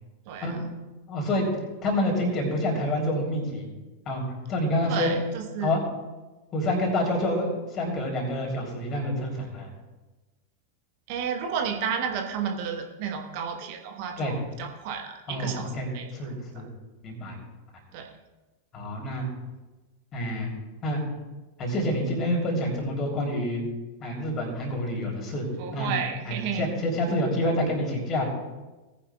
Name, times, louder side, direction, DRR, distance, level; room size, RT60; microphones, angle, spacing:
voice 1, 0.3-0.6 4.9-5.8 11.1-16.3 17.9-18.1 25.6-26.7, right 7 dB, 45° right, 3 dB, 1.3 m, -32 dB
voice 2, 1.1-1.5 1.8-3.7 4.0-4.2 4.5-5.1 5.6-5.8 6.5-9.7 14.2-14.3 15.3-16.7 17.0-17.4 18.7-19.3 20.1-20.5 20.8-21.0 21.6-23.6 24.0-25.9 26.2-28.3, left 1 dB, 30° left, 0 dB, 3.3 m, -28 dB
18.5 x 10.0 x 2.4 m, 1.2 s
figure-of-eight pair, 90°, 0 cm